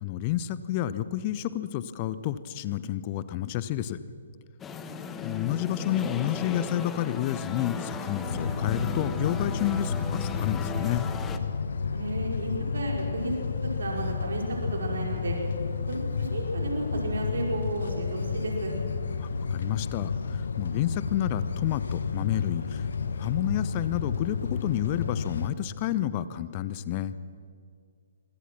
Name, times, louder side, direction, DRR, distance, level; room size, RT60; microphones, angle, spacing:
voice 1, 0.0-4.0 5.2-11.1 19.2-22.9 23.2-27.1, left 12 dB, 30° left, 14 dB, 0.9 m, -30 dB
sound 1, 4.6-11.4, left 4 dB, 15° left, 1.3 m, -37 dB
voice 2, 4.8-5.2 11.9-15.4 15.9-18.7, right 1 dB, 60° right, 0 dB, 5.0 m, -33 dB
sound 2, 8.2-25.5, left 5 dB, 60° left, 1.4 m, -31 dB
26.0 x 25.0 x 6.0 m, 2.2 s
figure-of-eight pair, 130°, 0 cm